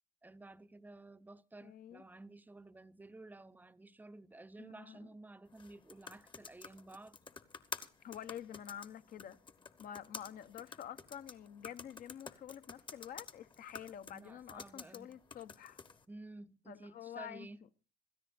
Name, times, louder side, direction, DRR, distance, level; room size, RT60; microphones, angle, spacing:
voice 1, 0.2-7.2 14.1-15.2 16.1-17.6, right 2 dB, 10° right, 0.6 m, -53 dB
voice 2, 1.6-2.0 4.6-5.1 8.0-9.4 9.8-15.8 16.7-17.5, left 10 dB, 55° left, 0.8 m, -48 dB
sound 1, 5.5-16.0, left 5 dB, 30° left, 1.0 m, -51 dB
26.5 x 13.5 x 2.6 m
cardioid pair, 110°, 17 cm